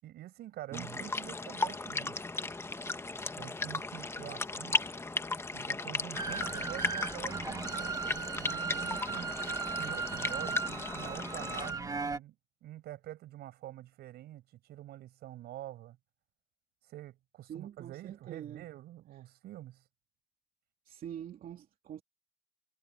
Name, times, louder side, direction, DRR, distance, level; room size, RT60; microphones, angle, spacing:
voice 1, 0.0-2.2 3.4-4.8 5.5-9.5 9.8-12.4 12.6-16.0 16.9-19.8, right 14 dB, 75° right, 6.4 m, -47 dB
sound 1, 0.7-11.7, left 3 dB, 15° left, 1.2 m, -36 dB
voice 2, 0.7-1.1 17.4-18.7 20.8-22.0, right 10 dB, 55° right, 2.8 m, -45 dB
sound 2, 6.1-12.2, right 4 dB, 20° right, 1.8 m, -37 dB
cardioid pair, 110°, 17 cm